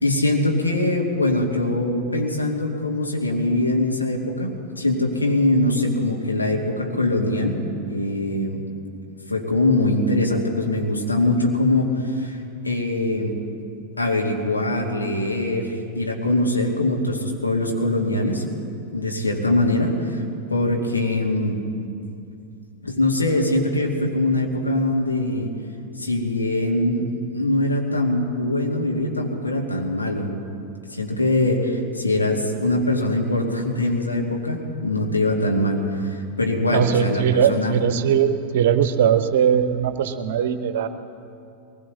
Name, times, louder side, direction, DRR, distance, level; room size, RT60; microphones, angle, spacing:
voice 1, 0.0-7.6 7.9-8.6 9.3-12.4 12.6-13.4 14.0-18.4 18.9-20.2 20.5-21.6 22.8-25.5 26.0-30.3 30.9-37.8, left 1 dB, 80° left, 0 dB, 1.9 m, -22 dB
voice 2, 36.7-40.9, right 8 dB, 55° right, 10 dB, 0.9 m, -20 dB
22.5 x 19.5 x 2.8 m, 2.5 s
figure-of-eight pair, 90°, 0 cm